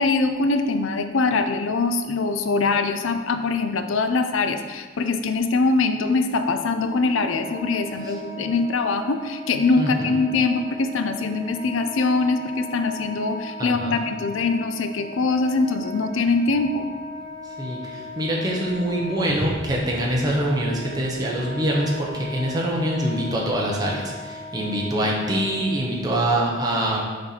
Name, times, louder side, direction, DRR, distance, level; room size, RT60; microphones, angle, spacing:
voice 1, 0.0-16.9, left 3 dB, 75° left, 8 dB, 0.5 m, -23 dB
Wind instrument woodwind instrument, 6.6-26.1, equal, 10° left, 1.6 m, -38 dB
voice 2, 9.8-10.2 13.6-14.0 17.6-27.0, right 1 dB, 20° right, -3 dB, 0.9 m, -24 dB
6.4 x 4.3 x 4.1 m, 1.5 s
head